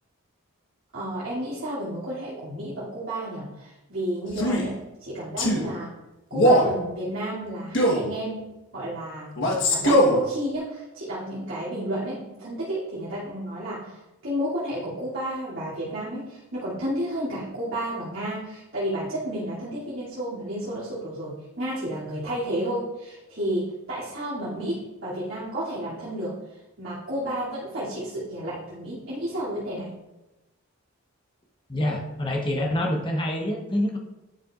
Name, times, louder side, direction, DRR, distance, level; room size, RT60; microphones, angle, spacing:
voice 1, 0.9-5.9 6.3-8.5 8.7-9.3 9.7-14.0 14.2-26.3 26.8-29.9, right 1 dB, 70° right, -11 dB, 2.7 m, -31 dB
Male speech man speaking, 4.3-4.7 5.4-5.7 6.3-6.7 7.7-8.1 9.4-10.2, equal, 55° left, 1.3 m, -20 dB
voice 2, 31.7-34.0, left 1 dB, 20° left, 0 dB, 1.0 m, -26 dB
11.5 x 5.7 x 2.5 m, 1.0 s
head